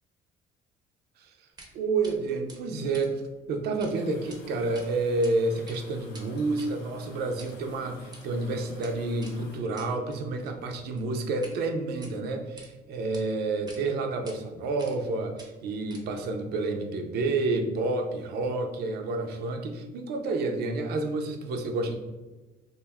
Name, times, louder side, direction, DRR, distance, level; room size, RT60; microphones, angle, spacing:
sound 1, 1.6-1.7 2.0-2.2 2.5-3.9 4.2-4.4 4.7-5.3 5.6-11.6 11.9-12.7 13.1-13.2 13.7-13.8 14.3-14.4 14.8-15.1 15.4-16.3, right 2 dB, 25° right, 0.6 m, -50 dB
voice 1, 1.7-3.2 3.5-22.0, right 3 dB, 70° right, 5 dB, 0.5 m, -29 dB
sound 2, 3.9-9.6, left 3 dB, 90° left, 0.5 m, -51 dB
2.4 x 2.2 x 3.3 m, 1.2 s
cardioid pair, 110°, 17 cm